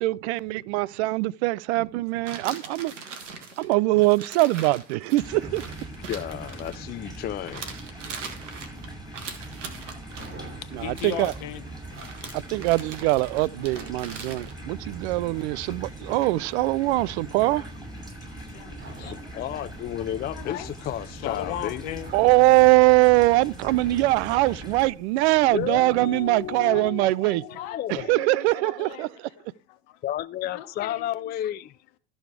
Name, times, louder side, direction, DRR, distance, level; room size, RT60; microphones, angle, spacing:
voice 1, 0.0-2.9 3.6-5.6 10.7-11.3 12.3-17.7 22.1-27.4 27.9-29.3, right 20 dB, 65° right, 0.5 m, -22 dB
sound 1, 2.3-7.2 7.5-10.3 10.9-11.4 11.9-14.5, right 5 dB, 85° right, 1.7 m, -41 dB
sound 2, 5.2-24.9, right 1 dB, 10° right, 7.0 m, -41 dB
voice 2, 6.1-7.7 12.2-12.3 19.0-22.0 25.4-28.1 30.0-31.8, left 12 dB, 30° left, 0.4 m, -32 dB
sound 3, 9.6-26.8, right 2 dB, 30° right, 3.1 m, -50 dB
voice 3, 10.8-11.7 16.1-16.2 18.5-19.6 20.3-20.7 21.1-22.1 26.6-26.9 27.2-30.0 30.5-31.4, left 12 dB, 65° left, 1.2 m, -38 dB
13.0 x 6.3 x 4.8 m
hypercardioid pair, 75°, 35 cm